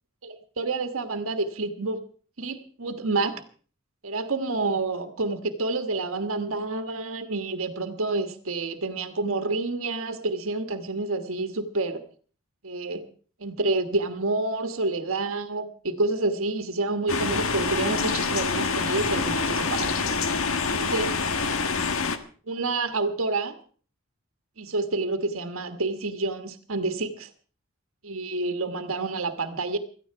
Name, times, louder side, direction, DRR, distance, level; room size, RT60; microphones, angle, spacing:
voice 1, 0.2-2.0 2.4-3.4 4.0-12.0 12.6-13.0 13.4-19.9 20.2-20.3 20.7-21.1 22.5-23.5 24.6-27.3 28.0-29.8, right 3 dB, 75° right, 8 dB, 1.5 m, -28 dB
sound 1, 17.1-22.2, left 4 dB, 75° left, 1.3 m, -26 dB
16.5 x 14.0 x 4.6 m, 0.42 s
head